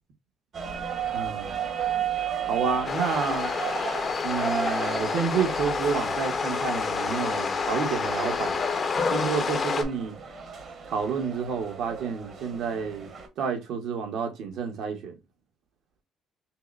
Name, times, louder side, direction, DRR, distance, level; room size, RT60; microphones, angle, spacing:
sound 1, 0.5-13.3, right 7 dB, 40° right, 1.0 m, -34 dB
voice 1, 1.1-1.6 2.5-3.5 4.2-8.6 9.1-10.2 10.9-13.1 13.4-15.2, right 6 dB, 65° right, 1.1 m, -29 dB
sound 2, 2.8-9.8, left 5 dB, 30° left, 0.6 m, -28 dB
5.7 x 2.1 x 2.5 m
cardioid pair, 150°, 0 cm